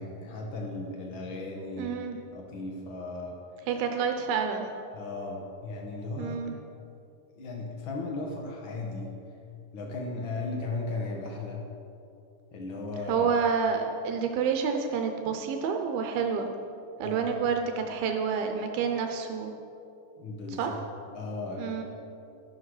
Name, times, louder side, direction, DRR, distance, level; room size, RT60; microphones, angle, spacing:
voice 1, 0.0-1.9 2.3-3.4 4.9-6.4 7.4-9.1 9.7-11.6 12.5-13.3 17.0-17.4 20.2-20.8 21.1-21.8, left 3 dB, 85° left, 0 dB, 1.1 m, -36 dB
voice 2, 1.8-2.2 3.7-4.7 6.2-6.6 13.1-16.5 17.0-19.5 20.5-20.7 21.6-21.8, right 6 dB, 80° right, 5 dB, 2.6 m, -28 dB
12.5 x 12.0 x 4.9 m, 2.6 s
omnidirectional pair, 4.3 m